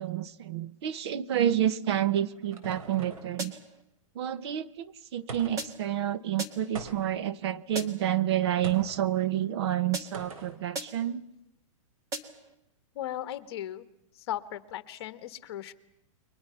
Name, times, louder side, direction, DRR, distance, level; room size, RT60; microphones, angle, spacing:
voice 1, 0.0-3.6 4.1-11.2, right 11 dB, 50° right, 15 dB, 1.0 m, -29 dB
sound 1, 1.8-3.4 5.3-5.8 6.7-7.3 8.6-9.0 10.1-10.6, right 4 dB, 80° right, 4.2 m, -42 dB
sound 2, 3.4-3.8 5.6-6.0 6.4-6.8 7.8-8.2 9.9-10.4 10.8-11.2 12.1-12.5, right 2 dB, 20° right, 1.8 m, -39 dB
voice 2, 12.9-13.9 14.1-15.7, left 12 dB, 50° left, 12 dB, 1.4 m, -37 dB
30.0 x 23.0 x 5.8 m, 0.81 s
hypercardioid pair, 160°, 17 cm